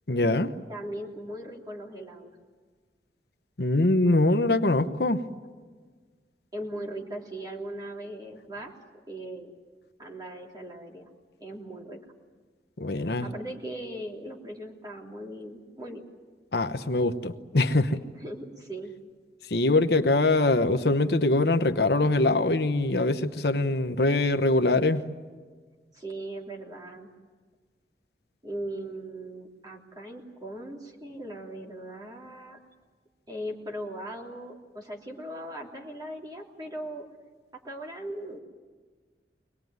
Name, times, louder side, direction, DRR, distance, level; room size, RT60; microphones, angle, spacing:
voice 1, 0.1-0.5 3.6-5.2 12.8-13.3 16.5-18.0 19.5-25.0, left 2 dB, 65° left, 8 dB, 1.0 m, -23 dB
voice 2, 0.7-2.3 6.5-8.7 9.1-9.5 10.0-11.1 11.4-12.0 13.2-16.0 18.2-18.9 25.9-27.1 28.4-32.6 33.3-37.0 37.6-38.4, right 1 dB, 20° right, -1 dB, 3.3 m, -39 dB
24.5 x 19.5 x 9.5 m, 1.5 s
head